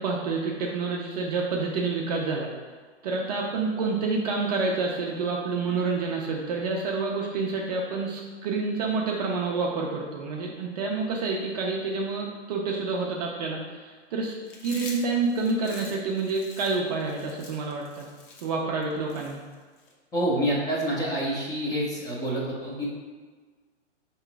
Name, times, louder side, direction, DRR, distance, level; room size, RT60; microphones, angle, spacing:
voice 1, 0.0-2.6 3.0-14.3 14.6-18.1 18.4-19.4, right 4 dB, 35° right, -2 dB, 0.5 m, -28 dB
Chewing mastication, 14.5-19.9, left 3 dB, 45° left, 0.9 m, -45 dB
voice 2, 20.1-22.9, right 1 dB, 10° left, -5 dB, 0.6 m, -27 dB
3.6 x 3.0 x 4.5 m, 1.5 s
hypercardioid pair, 135°, 36 cm